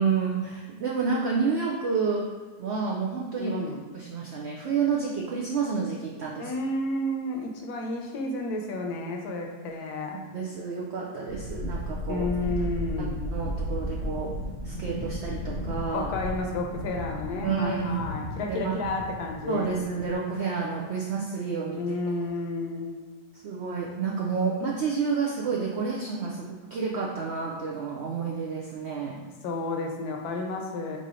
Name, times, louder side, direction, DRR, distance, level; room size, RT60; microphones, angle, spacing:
voice 1, 0.0-2.3 2.6-3.6 3.9-6.5 10.3-12.3 13.0-14.3 14.6-16.1 17.4-17.9 18.5-18.7 19.5-22.0 23.4-29.2, right 5 dB, 75° right, -2 dB, 0.6 m, -29 dB
voice 2, 3.4-3.8 6.4-10.2 12.1-13.2 15.9-19.7 21.8-23.0 29.4-31.0, left 2 dB, 70° left, 2 dB, 1.2 m, -31 dB
sound 1, 11.3-20.1, equal, 35° right, 1.1 m, -34 dB
4.0 x 2.7 x 4.8 m, 1.4 s
omnidirectional pair, 1.8 m